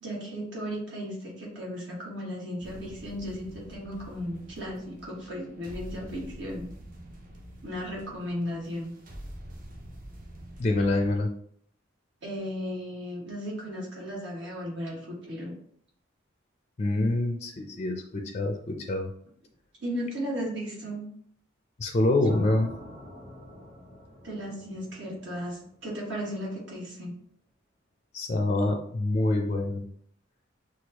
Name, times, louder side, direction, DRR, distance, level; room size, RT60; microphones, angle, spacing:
voice 1, 0.0-6.7 7.6-8.9 12.2-15.6 19.8-21.0 24.2-27.1, equal, 60° right, -4 dB, 1.7 m, -35 dB
sound 1, 2.6-11.2, equal, 40° right, 0.7 m, -45 dB
voice 2, 10.6-11.3 16.8-19.1 21.8-22.7 28.1-29.8, left 2 dB, 35° left, 3 dB, 0.4 m, -26 dB
sound 2, 22.3-26.4, equal, 20° right, 1.3 m, -47 dB
6.2 x 2.4 x 2.9 m, 0.63 s
head